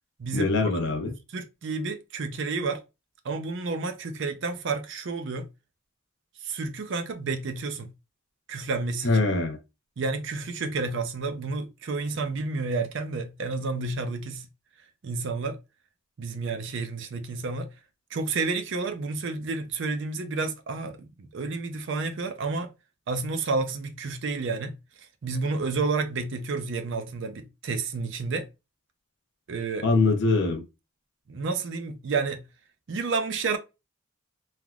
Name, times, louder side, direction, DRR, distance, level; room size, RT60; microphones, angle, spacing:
voice 1, 0.3-1.1 9.0-9.6 29.8-30.6, left 3 dB, 55° left, 0.6 m, -23 dB
voice 2, 1.3-2.8 3.2-5.5 6.4-7.9 8.5-9.2 10.0-14.5 15.0-15.6 16.2-17.7 18.1-22.7 23.1-24.8 25.2-28.5 29.5-29.9 31.3-32.4 32.9-33.6, right 3 dB, 60° right, 0.4 m, -30 dB
3.3 x 2.4 x 2.2 m
head